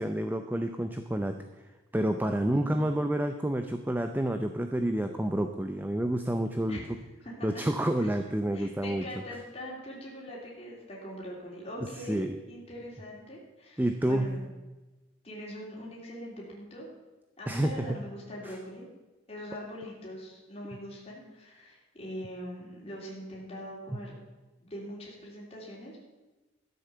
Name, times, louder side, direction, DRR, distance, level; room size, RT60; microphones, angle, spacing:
voice 1, 0.0-1.4 1.9-6.8 7.4-9.0 12.1-12.3 13.8-14.3 17.5-17.7 18.4-18.6, right 1 dB, 10° right, 7 dB, 0.5 m, -29 dB
voice 2, 2.4-2.8 6.7-6.8 7.2-7.6 8.5-14.4 15.2-16.9 17.4-18.9 19.3-24.1 24.6-26.0, equal, 30° left, -4 dB, 3.2 m, -42 dB
13.0 x 8.1 x 6.8 m, 1.1 s
head